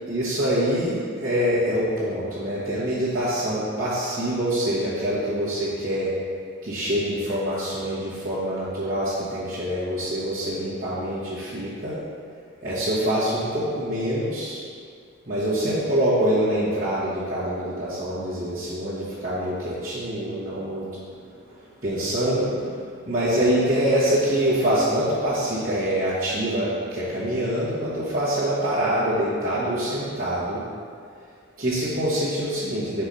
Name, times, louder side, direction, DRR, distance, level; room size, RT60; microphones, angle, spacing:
voice 1, 0.1-6.1 6.6-12.0 12.6-14.6 15.3-20.9 21.8-22.8 23.1-30.6 31.6-33.1, equal, 45° right, -12 dB, 1.4 m, -25 dB
4.9 x 4.5 x 5.5 m, 2.3 s
head